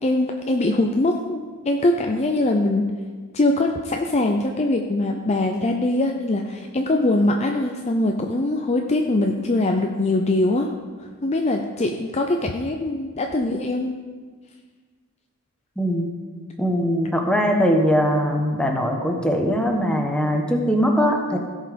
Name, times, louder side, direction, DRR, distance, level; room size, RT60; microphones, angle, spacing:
voice 1, 0.0-1.4 1.6-2.9 3.3-10.7 11.0-14.0, left 2 dB, 30° left, 3 dB, 0.5 m, -22 dB
voice 2, 15.8-16.1 16.6-21.4, equal, 5° left, 2 dB, 1.1 m, -21 dB
16.0 x 5.4 x 5.2 m, 1.5 s
head